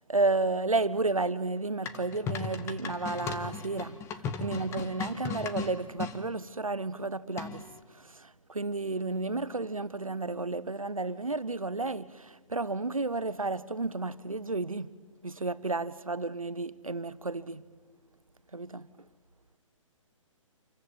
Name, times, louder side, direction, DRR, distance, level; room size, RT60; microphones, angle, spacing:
voice 1, 0.1-4.0 4.4-7.6 8.0-14.9 15.2-17.6 18.5-18.9, right 3 dB, 85° right, 1.1 m, -32 dB
sound 1, 1.9-6.2 7.4-7.8, left 5 dB, 15° left, 1.6 m, -37 dB
28.0 x 14.5 x 9.7 m
figure-of-eight pair, 125°, 17 cm